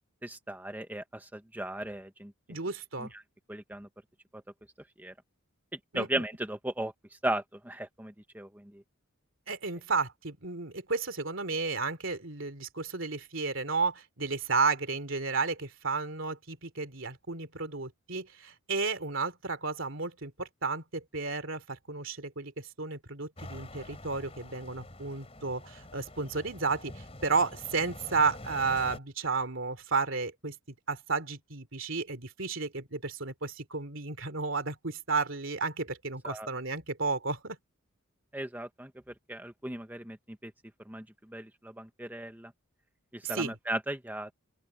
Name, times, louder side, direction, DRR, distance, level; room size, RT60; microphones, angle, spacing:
voice 1, 0.2-2.6 3.0-3.2 3.5-3.9 4.3-4.4 5.0-5.1 5.7-8.8 36.2-36.5 38.3-38.9 39.3-40.5 40.8-42.5 43.1-44.3, right 1 dB, 10° right, 1.0 m, -37 dB
voice 2, 2.5-3.1 5.9-6.2 9.5-37.6 43.2-43.5, right 4 dB, 60° right, 3.1 m, -32 dB
sound 1, 23.4-29.0, left 1 dB, 30° left, 4.2 m, -46 dB
open air
head